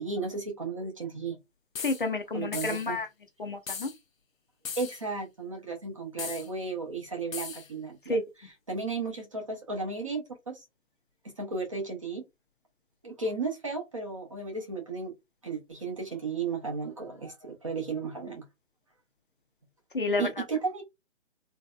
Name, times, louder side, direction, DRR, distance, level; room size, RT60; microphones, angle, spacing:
voice 1, 0.0-1.4 2.3-3.0 4.8-8.2 8.7-10.6 11.4-12.2 13.0-15.1 15.4-18.4 20.2-20.8, right 4 dB, 25° right, 0.6 m, -34 dB
sound 1, 1.7-2.0 2.5-2.9 3.7-4.0 4.6-5.0 6.2-6.5 7.3-7.7, left 6 dB, 80° left, 0.8 m, -38 dB
voice 2, 1.8-3.1 3.4-3.9 8.0-8.2 19.9-20.4, left 2 dB, 40° left, 0.5 m, -30 dB
3.2 x 2.7 x 2.3 m
figure-of-eight pair, 150°, 40 cm